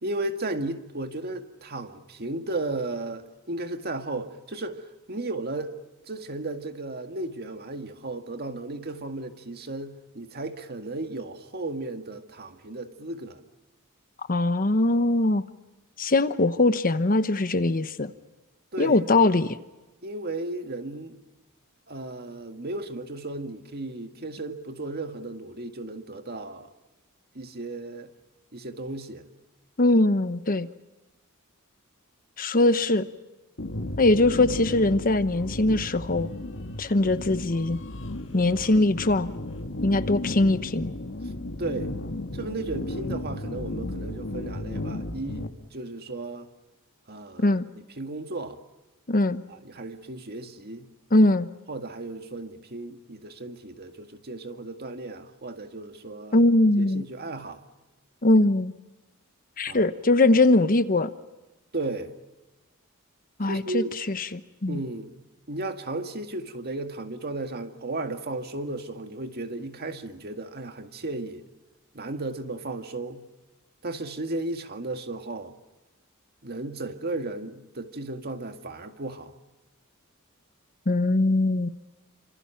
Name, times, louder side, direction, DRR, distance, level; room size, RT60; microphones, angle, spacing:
voice 1, 0.0-5.8 6.1-13.4 18.7-19.0 20.0-21.2 21.9-26.7 27.3-28.1 28.5-29.2 41.6-41.9 42.3-46.5 47.1-47.6 48.0-48.6 49.5-50.9 51.7-56.4 56.8-57.6 59.7-59.8 61.7-62.1 63.5-63.9 64.7-65.1 65.5-71.4 71.9-73.2 73.8-75.5 76.4-79.4, right 2 dB, 45° right, 2.0 m, -35 dB
voice 2, 14.3-15.4 16.0-18.1 18.8-19.6 29.8-30.7 32.4-33.0 34.0-36.3 36.8-37.8 38.3-39.3 39.8-40.9 47.4-47.7 49.1-49.4 51.1-51.5 56.3-57.0 58.2-58.7 59.6-61.1 63.4-64.8 80.9-81.7, left 2 dB, 40° left, 1.0 m, -21 dB
sound 1, 33.6-45.5, left 1 dB, 60° left, 1.9 m, -34 dB
29.0 x 26.5 x 5.8 m
head